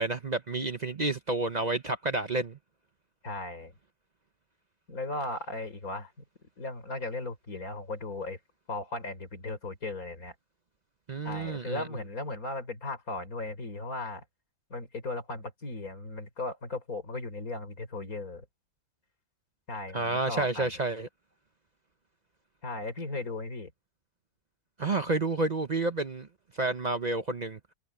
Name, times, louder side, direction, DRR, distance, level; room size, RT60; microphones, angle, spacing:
voice 1, 0.0-2.6 11.1-11.8 19.9-21.1 24.8-26.3 26.6-27.6, right 2 dB, 35° right, 0.8 m, -30 dB
voice 2, 3.2-3.7 4.9-6.1 6.6-8.4 8.7-10.3 11.2-14.2 14.7-18.4 19.7-20.7 22.6-23.7, left 2 dB, 85° left, 4.9 m, -37 dB
omnidirectional pair, 1.5 m